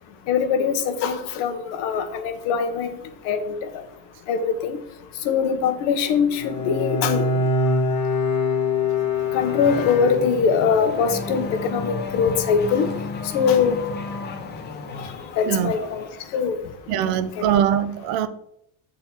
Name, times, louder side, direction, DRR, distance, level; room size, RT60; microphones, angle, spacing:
voice 1, 0.3-2.9 3.3-3.6 4.3-4.8 5.2-7.2 9.3-12.9 13.3-13.8 15.4-16.1 16.3-16.6 17.4-17.5, left 6 dB, 75° left, 7 dB, 1.0 m, -22 dB
Bowed string instrument, 6.4-10.7, left 3 dB, 40° left, 1.3 m, -24 dB
Race car auto racing / Accelerating revving vroom, 9.1-16.4, left 4 dB, 25° left, 0.7 m, -33 dB
voice 2, 16.9-18.3, right 10 dB, 60° right, 13 dB, 0.6 m, -22 dB
6.7 x 3.8 x 4.3 m, 0.76 s
cardioid pair, 140°, 41 cm